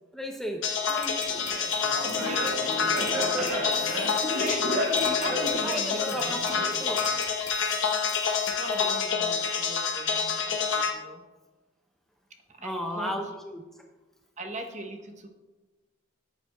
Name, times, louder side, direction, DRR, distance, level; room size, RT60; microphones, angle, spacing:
voice 1, 0.1-1.2 5.6-6.4 6.8-7.1 12.6-13.8, equal, ahead, 2 dB, 0.6 m, -35 dB
sound 1, 0.6-10.9, left 6 dB, 80° left, 0.9 m, -28 dB
sound 2, 1.0-9.0, left 5 dB, 40° left, 2.1 m, -43 dB
Laughter, 1.3-7.2, equal, 65° right, 1.8 m, -33 dB
voice 2, 1.9-6.3 8.5-11.2 12.6-13.1 14.4-15.3, right 2 dB, 40° right, 4 dB, 0.8 m, -39 dB
13.5 x 7.3 x 2.2 m, 1.2 s
head